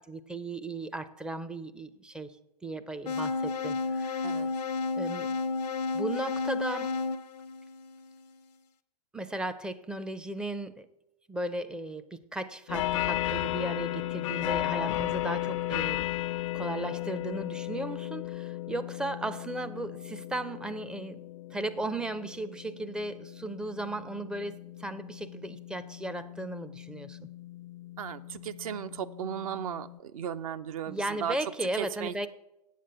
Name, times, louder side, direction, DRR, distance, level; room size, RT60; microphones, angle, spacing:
voice 1, 0.0-2.3 2.6-4.3 5.0-5.4 5.9-7.0 9.1-10.9 11.3-16.1 16.5-21.2 21.5-27.2 30.9-32.3, right 1 dB, 5° right, 11 dB, 0.4 m, -36 dB
sound 1, 3.1-8.2, left 4 dB, 85° left, 0.8 m, -32 dB
sound 2, 12.7-30.0, left 15 dB, 50° left, 0.5 m, -35 dB
voice 2, 28.0-31.4 31.8-32.3, right 9 dB, 60° right, 11 dB, 0.6 m, -36 dB
8.3 x 7.4 x 7.7 m, 0.88 s
hypercardioid pair, 125°, 20 cm